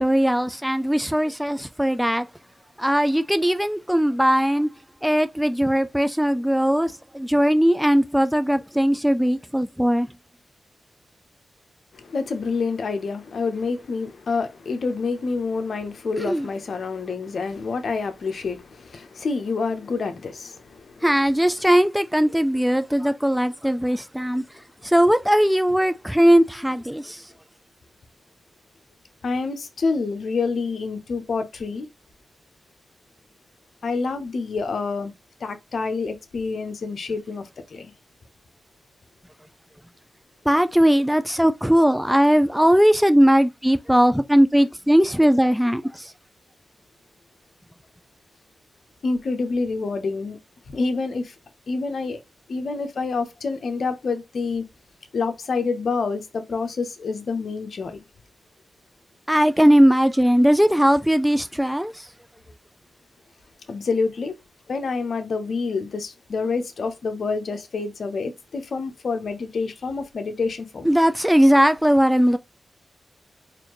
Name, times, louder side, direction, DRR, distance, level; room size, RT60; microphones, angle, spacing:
voice 1, 0.0-2.3 2.8-4.7 5.0-10.1 16.2-16.5 21.0-24.4 24.8-27.2 40.5-46.1 59.3-61.9 70.9-72.4, equal, 5° right, 0.4 m, -19 dB
voice 2, 11.9-21.0 24.3-24.4 29.2-31.9 33.8-35.1 35.4-37.9 49.0-50.4 50.7-51.3 51.7-52.2 52.5-54.6 55.1-58.0 63.7-64.3 64.7-70.9, left 4 dB, 70° left, 0.8 m, -27 dB
4.2 x 2.6 x 3.0 m
cardioid pair, 55°, 0 cm